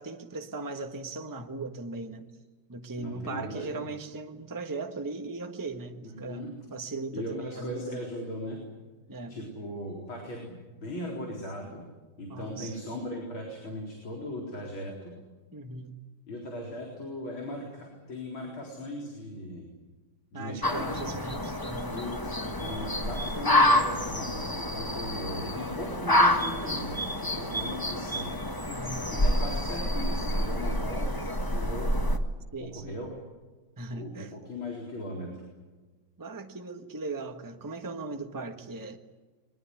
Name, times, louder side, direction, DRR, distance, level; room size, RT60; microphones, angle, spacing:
voice 1, 0.0-2.3 2.7-6.4 6.7-8.0 9.1-9.4 12.3-12.7 15.5-16.0 20.3-22.1 28.7-29.1 32.5-33.1 33.8-34.3 36.2-39.0, right 3 dB, 10° right, 1.2 m, -38 dB
voice 2, 3.0-3.9 6.0-6.5 7.1-8.6 9.3-11.8 12.2-15.1 16.3-19.6 20.3-21.1 21.9-28.3 29.1-31.9 32.6-33.1 33.9-35.4, left 1 dB, 90° left, 5.0 m, -38 dB
sound 1, 20.6-32.2, left 1 dB, 10° left, 1.2 m, -28 dB
22.5 x 21.0 x 9.9 m
omnidirectional pair, 2.2 m